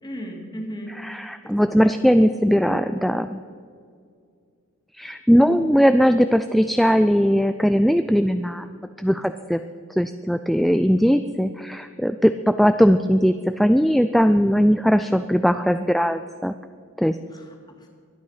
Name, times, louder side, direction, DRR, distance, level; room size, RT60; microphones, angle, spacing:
voice 1, 0.0-1.0 1.4-2.0 17.3-17.9, equal, 20° left, 2 dB, 2.4 m, -36 dB
voice 2, 1.0-3.4 4.9-9.6 10.0-16.5 17.0-17.2, equal, ahead, 9 dB, 0.3 m, -19 dB
23.5 x 9.3 x 5.7 m, 2.2 s
head